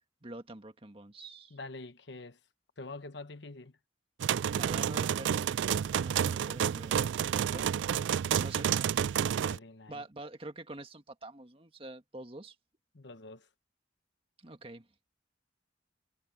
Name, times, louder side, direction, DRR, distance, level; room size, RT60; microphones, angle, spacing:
voice 1, 0.2-1.6 4.5-5.5 6.0-7.1 7.4-7.7 8.3-9.2 9.9-12.6 14.4-14.9, right 2 dB, 30° right, 1.7 m, -46 dB
voice 2, 1.5-2.4 2.8-3.8 9.4-10.0 12.9-13.5, left 3 dB, 65° left, 1.1 m, -46 dB
sound 1, 4.2-9.6, right 8 dB, 70° right, 0.3 m, -30 dB
head